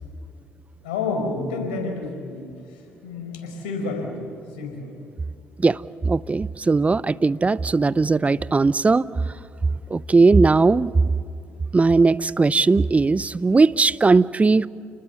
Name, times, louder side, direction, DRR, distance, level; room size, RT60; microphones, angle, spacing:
voice 1, 0.8-2.5 3.0-4.2 4.6-4.9, left 3 dB, 85° left, 3 dB, 5.0 m, -29 dB
voice 2, 5.6-9.1 9.9-10.9 11.7-14.7, right 3 dB, 25° right, 19 dB, 0.7 m, -18 dB
29.5 x 20.0 x 7.1 m, 2.5 s
hypercardioid pair, 60°, 6 cm